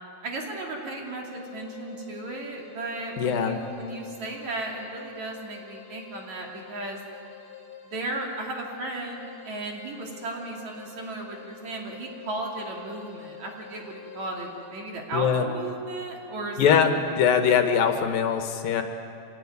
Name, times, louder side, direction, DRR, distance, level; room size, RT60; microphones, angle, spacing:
voice 1, 0.2-7.0 7.9-17.0, right 2 dB, 50° right, 0 dB, 3.8 m, -35 dB
sound 1, 1.3-15.0, left 9 dB, 25° left, 3.3 m, -47 dB
voice 2, 3.2-3.6 15.1-15.5 16.6-18.8, left 7 dB, 70° left, 6 dB, 2.8 m, -22 dB
26.5 x 17.0 x 9.6 m, 2.7 s
omnidirectional pair, 4.5 m